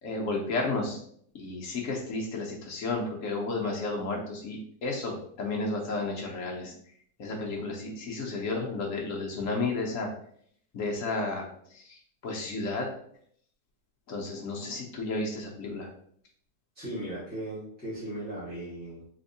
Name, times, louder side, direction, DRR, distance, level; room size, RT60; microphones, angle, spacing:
voice 1, 0.0-1.0 1.3-6.7 7.2-10.1 10.7-11.5 11.7-12.9 14.1-15.9, left 3 dB, 60° left, 0 dB, 0.9 m, -32 dB
voice 2, 16.7-19.1, right 1 dB, 5° right, -12 dB, 1.1 m, -37 dB
3.5 x 3.3 x 2.6 m, 0.63 s
omnidirectional pair, 1.8 m